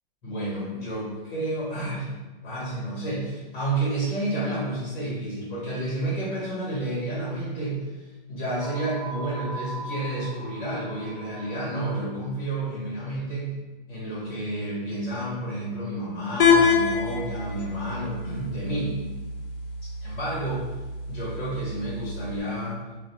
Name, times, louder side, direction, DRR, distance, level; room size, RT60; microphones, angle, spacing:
voice 1, 0.2-2.1 2.4-13.5 13.9-18.9 20.0-20.6 21.1-22.8, right 1 dB, 20° left, -8 dB, 1.0 m, -30 dB
sound 1, 8.6-12.2, right 2 dB, 35° right, 0.4 m, -40 dB
sound 2, 16.4-22.4, left 5 dB, 65° left, 0.5 m, -26 dB
2.4 x 2.1 x 3.0 m, 1.2 s
hypercardioid pair, 175°, 29 cm